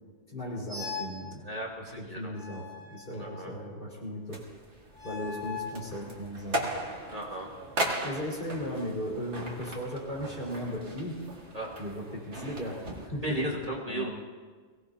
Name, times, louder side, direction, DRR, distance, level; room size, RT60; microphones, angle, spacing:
voice 1, 0.3-1.5 1.8-4.5 5.0-6.8 8.0-11.2 11.8-13.6 13.9-14.1, equal, 45° left, -4 dB, 4.7 m, -37 dB
sound 1, 0.7-1.2 2.3-3.6 4.9-5.8, left 6 dB, 5° right, 2.6 m, -40 dB
voice 2, 1.4-2.3 3.1-3.5 7.1-7.5 11.5-11.8 13.2-14.1, right 1 dB, 30° right, -3 dB, 1.9 m, -35 dB
sound 2, 4.3-13.1, right 1 dB, 70° right, 2.2 m, -38 dB
22.5 x 17.5 x 2.8 m, 1.5 s
omnidirectional pair, 1.2 m